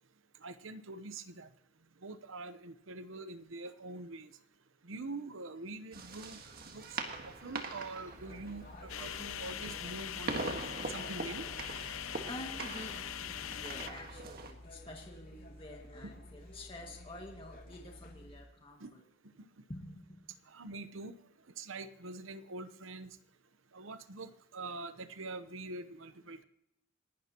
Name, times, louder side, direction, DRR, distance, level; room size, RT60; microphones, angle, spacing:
voice 1, 0.4-1.5 2.0-4.3 4.8-6.4 6.7-7.0 7.2-10.6 10.9-11.4 16.0-16.1 18.8-18.9 19.4-19.5 20.5-21.2 21.6-23.2 23.7-26.4, right 3 dB, 70° right, 12 dB, 0.9 m, -44 dB
sound 1, 5.9-14.5, right 3 dB, 45° right, 1.7 m, -43 dB
sound 2, 8.1-18.4, left 1 dB, 45° left, 2.6 m, -52 dB
sound 3, 8.9-13.9, left 9 dB, 80° left, 0.7 m, -42 dB
voice 2, 12.3-19.0 19.7-20.0, left 1 dB, 25° left, 0 dB, 2.0 m, -48 dB
28.5 x 12.0 x 3.0 m, 0.80 s
head